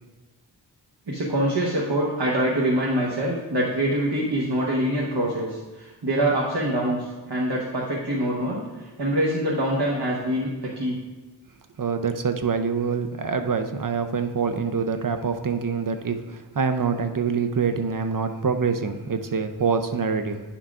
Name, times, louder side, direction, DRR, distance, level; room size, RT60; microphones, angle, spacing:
voice 1, 1.1-11.0, right 1 dB, 70° right, -4 dB, 1.1 m, -25 dB
voice 2, 11.8-20.4, right 5 dB, 50° right, 8 dB, 0.6 m, -25 dB
9.9 x 5.8 x 2.4 m, 1.2 s
wide cardioid pair, 55°, 43 cm